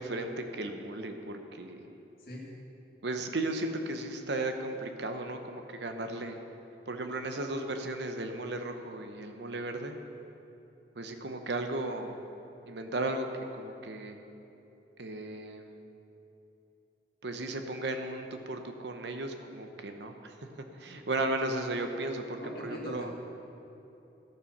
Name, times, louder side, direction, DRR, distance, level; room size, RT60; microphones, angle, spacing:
voice 1, 0.0-1.8 3.0-6.4 6.9-10.0 11.0-12.2 12.7-13.3 13.5-14.2 15.0-15.8 17.2-20.3 20.8-23.1, right 2 dB, 75° right, 6 dB, 0.9 m, -35 dB
voice 2, 22.4-23.1, equal, 55° left, -3 dB, 2.1 m, -41 dB
13.5 x 7.1 x 6.0 m, 2.9 s
head